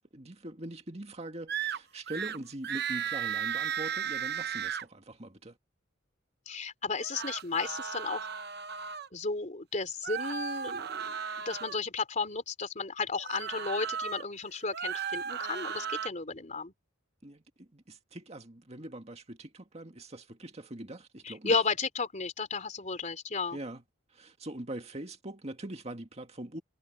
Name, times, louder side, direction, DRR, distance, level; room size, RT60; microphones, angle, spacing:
voice 1, 0.1-5.6 17.2-21.6 23.5-23.8 24.1-26.6, right 1 dB, 35° right, 2.0 m, -42 dB
sound 1, 1.5-1.8 2.1-2.4 2.6-4.8 6.9-9.1 10.0-11.8 13.2-14.2 14.6-16.1, right 8 dB, 55° right, 0.9 m, -35 dB
voice 2, 6.4-8.3 9.1-11.2 11.4-16.7 21.2-23.6, left 4 dB, 40° left, 3.4 m, -33 dB
head